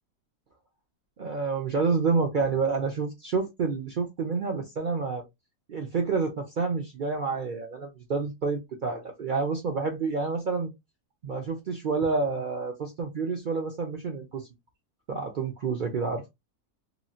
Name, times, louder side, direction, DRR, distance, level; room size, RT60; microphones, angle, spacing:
voice 1, 1.2-5.3 5.7-10.7 11.2-14.5 15.1-16.2, right 4 dB, 75° right, 0.4 m, -28 dB
3.0 x 2.6 x 2.3 m
omnidirectional pair, 1.5 m